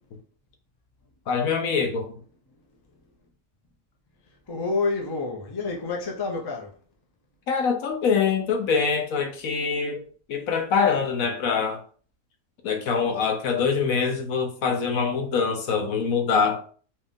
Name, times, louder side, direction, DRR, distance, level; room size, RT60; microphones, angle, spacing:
voice 1, 1.3-2.1 7.5-10.0 10.3-11.8 12.6-16.6, left 5 dB, 65° left, 1.1 m, -24 dB
voice 2, 4.5-6.8, left 3 dB, 30° left, 0.4 m, -28 dB
4.3 x 2.4 x 3.6 m
omnidirectional pair, 1.6 m